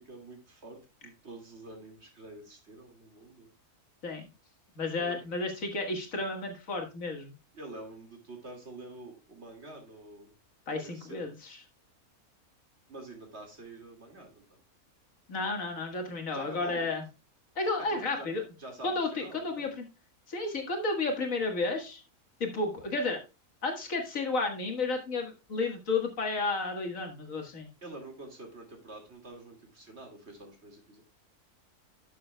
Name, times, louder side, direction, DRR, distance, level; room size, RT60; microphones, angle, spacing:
voice 1, 0.0-3.5 5.0-5.2 7.5-10.3 10.7-11.3 12.9-14.4 16.3-16.9 17.8-18.3 18.6-19.7 27.8-31.0, right 2 dB, 45° right, 3 dB, 2.4 m, -47 dB
voice 2, 4.8-7.3 10.7-11.6 15.3-17.0 17.6-18.4 18.8-19.8 20.3-22.0 22.4-23.2 23.6-27.7, left 3 dB, 60° left, 3 dB, 1.9 m, -32 dB
12.0 x 6.6 x 2.2 m, 0.29 s
omnidirectional pair, 1.6 m